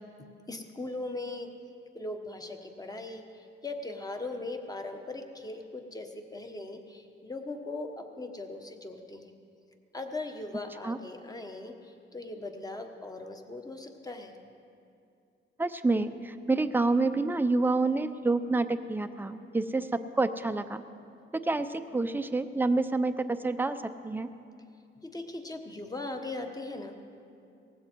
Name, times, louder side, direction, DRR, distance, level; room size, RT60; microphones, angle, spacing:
voice 1, 0.5-1.5 1.9-9.3 9.9-14.4 25.0-27.0, left 2 dB, 20° left, 5 dB, 1.2 m, -39 dB
voice 2, 15.6-20.8 21.3-23.8 24.0-24.3, right 3 dB, 10° right, 9 dB, 0.6 m, -28 dB
18.5 x 15.5 x 4.6 m, 2.5 s
cardioid pair, 125°, 21 cm